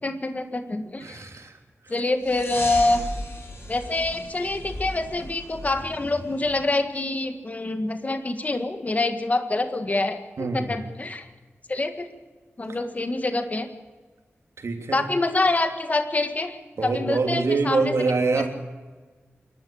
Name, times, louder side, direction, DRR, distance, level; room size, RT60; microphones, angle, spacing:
voice 1, 0.0-1.3 1.9-3.0 3.7-11.3 11.7-12.1 12.6-13.7 14.9-17.9 18.4-18.5, left 2 dB, 35° left, 8 dB, 1.8 m, -26 dB
voice 2, 1.0-1.6 1.9-2.0 10.4-10.8 14.6-15.1 16.8-18.5, right 3 dB, 75° right, 4 dB, 3.2 m, -25 dB
sound 1, 2.2-6.7, left 1 dB, 65° left, 7.2 m, -36 dB
27.5 x 12.5 x 8.7 m, 1.3 s
wide cardioid pair, 120°, 5 cm